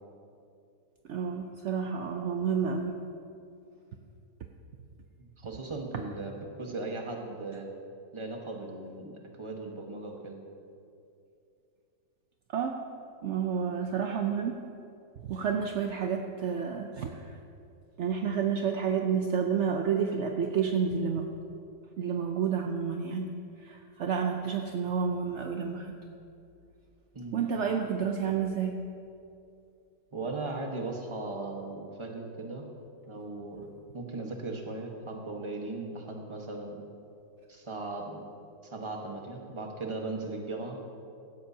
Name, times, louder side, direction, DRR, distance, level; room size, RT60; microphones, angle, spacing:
voice 1, 1.0-3.0 12.5-12.8 13.2-14.6 15.2-17.4 18.0-21.3 22.0-23.3 23.6-26.0 27.3-28.8, right 6 dB, 70° right, 3 dB, 0.7 m, -30 dB
voice 2, 5.2-7.7 8.1-10.4 27.1-27.5 30.1-32.6 33.1-36.8 37.5-38.2 38.6-40.8, right 2 dB, 20° right, 1 dB, 1.1 m, -38 dB
16.5 x 13.0 x 2.8 m, 2.6 s
omnidirectional pair, 1.9 m